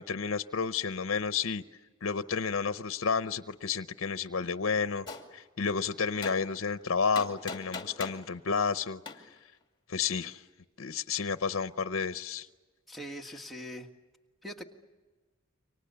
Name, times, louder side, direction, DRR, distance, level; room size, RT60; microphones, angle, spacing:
voice 1, 0.0-1.6 2.0-5.0 5.3-9.0 9.9-10.4 10.8-12.5, left 5 dB, 75° left, 11 dB, 0.7 m, -31 dB
Gunshot gunfire, 5.1-5.2 6.2-6.4 7.1-8.2 9.1-9.2, left 4 dB, 25° left, 2.6 m, -38 dB
voice 2, 12.9-13.9 14.4-14.6, equal, ahead, 0 dB, 1.7 m, -41 dB
29.0 x 25.0 x 6.9 m, 1.3 s
head